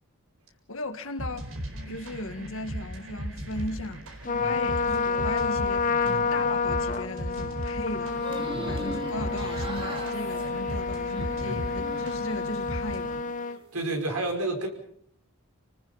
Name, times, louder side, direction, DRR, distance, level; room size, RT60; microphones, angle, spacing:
voice 1, 0.7-13.3, left 1 dB, 65° left, 1.9 m, -37 dB
sound 1, 1.2-13.2, equal, 70° right, 4.8 m, -38 dB
Trumpet, 4.2-13.6, left 4 dB, 35° left, 1.0 m, -29 dB
sound 2, 8.1-12.5 12.9-13.6, right 1 dB, 25° right, 2.5 m, -40 dB
voice 2, 13.7-14.7, right 2 dB, 85° right, 5.5 m, -31 dB
29.0 x 19.5 x 5.7 m
head